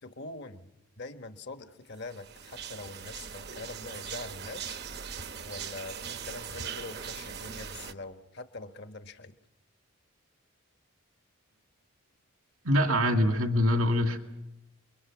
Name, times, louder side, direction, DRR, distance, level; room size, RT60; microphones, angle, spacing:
voice 1, 0.0-0.7 1.0-4.8 5.4-9.4, left 3 dB, 50° left, 8 dB, 1.2 m, -43 dB
sound 1, 2.1-7.9, right 7 dB, 50° right, 1.0 m, -40 dB
voice 2, 12.6-14.2, left 1 dB, 80° right, 4 dB, 2.4 m, -24 dB
30.0 x 23.0 x 6.1 m, 0.89 s
head